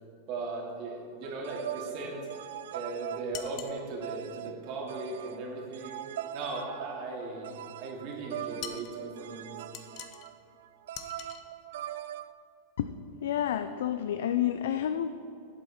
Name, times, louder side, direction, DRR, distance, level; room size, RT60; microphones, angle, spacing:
voice 1, 0.3-2.2 2.7-6.0 6.3-9.5, right 3 dB, 50° right, -1 dB, 2.6 m, -38 dB
sound 1, 1.2-12.3, right 12 dB, 75° right, 0.4 m, -41 dB
sound 2, 3.3-3.8 8.6-8.9 9.7-10.3 10.9-11.4, left 10 dB, 45° left, 0.9 m, -42 dB
voice 2, 13.2-15.1, left 10 dB, 75° left, 10 dB, 0.4 m, -29 dB
11.5 x 7.9 x 4.4 m, 2.6 s
hypercardioid pair, 125°, 0 cm